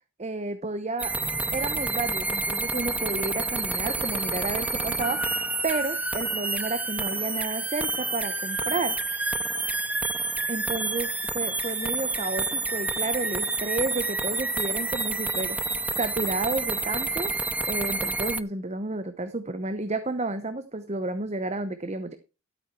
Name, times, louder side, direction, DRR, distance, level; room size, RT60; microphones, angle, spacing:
voice 1, 0.2-1.1 1.5-9.0 10.5-11.1 11.3-15.6 16.0-17.3 17.7-22.1, right 2 dB, 30° right, 10 dB, 0.9 m, -31 dB
sound 1, 1.0-18.4, right 3 dB, 5° right, 0.5 m, -29 dB
12.5 x 8.6 x 4.6 m, 0.31 s
head